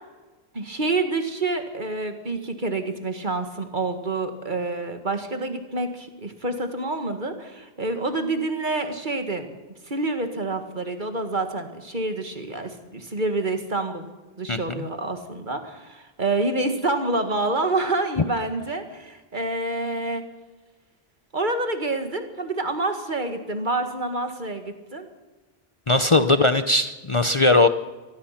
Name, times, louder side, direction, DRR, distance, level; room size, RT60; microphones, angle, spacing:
voice 1, 0.5-9.5 9.9-14.1 14.4-20.2 21.3-25.1 26.4-26.5, right 2 dB, 50° right, 6 dB, 2.0 m, -27 dB
voice 2, 14.5-14.9 25.9-27.7, left 2 dB, 35° left, 9 dB, 0.8 m, -19 dB
24.5 x 19.0 x 5.9 m, 1.2 s
omnidirectional pair, 1.0 m